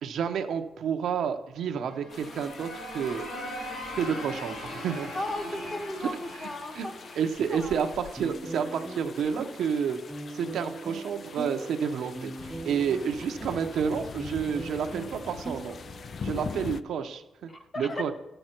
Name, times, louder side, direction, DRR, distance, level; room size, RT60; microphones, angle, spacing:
voice 1, 0.0-3.3 4.0-5.1 6.7-6.9 7.1-10.0 10.3-15.8 16.2-18.1, right 7 dB, 75° right, 5 dB, 0.9 m, -30 dB
sound 1, 1.8-8.5, left 1 dB, 65° left, 3.9 m, -40 dB
sound 2, 2.1-16.8, left 6 dB, 40° left, 0.3 m, -44 dB
voice 2, 5.1-6.1 6.4-6.9 7.5-7.8 16.3-16.5 17.5-18.1, left 1 dB, 20° left, 5 dB, 0.9 m, -35 dB
sound 3, 8.2-16.3, right 2 dB, 10° right, 0.7 m, -41 dB
14.0 x 7.9 x 4.5 m, 0.92 s
wide cardioid pair, 175°, 0 cm